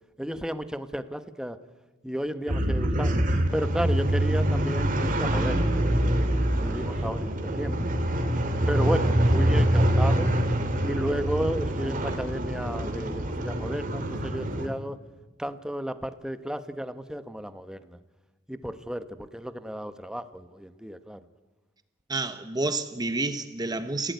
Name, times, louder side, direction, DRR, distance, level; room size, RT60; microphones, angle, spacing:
voice 1, 0.2-1.6 2.0-3.2 3.5-7.8 8.7-10.3 10.8-15.0 15.4-18.0 18.5-21.2, equal, 5° right, 1.1 m, -33 dB
sound 1, 2.5-14.7, right 1 dB, 45° right, 2.5 m, -25 dB
voice 2, 22.1-24.1, right 2 dB, 20° right, 1.2 m, -29 dB
29.5 x 16.5 x 9.4 m
head